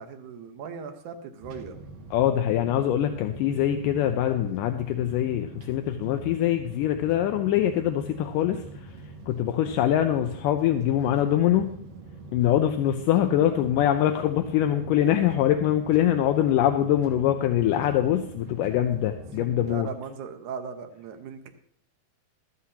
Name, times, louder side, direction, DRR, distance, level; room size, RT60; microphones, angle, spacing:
voice 1, 0.0-1.8 9.3-9.6 19.7-21.5, right 6 dB, 65° right, 6 dB, 2.1 m, -38 dB
sound 1, 1.4-19.8, right 2 dB, 90° right, 3.4 m, -44 dB
voice 2, 2.1-8.6 9.3-11.7 12.3-19.9, left 11 dB, 80° left, 6 dB, 2.0 m, -23 dB
15.5 x 13.0 x 2.9 m, 0.64 s
omnidirectional pair, 4.4 m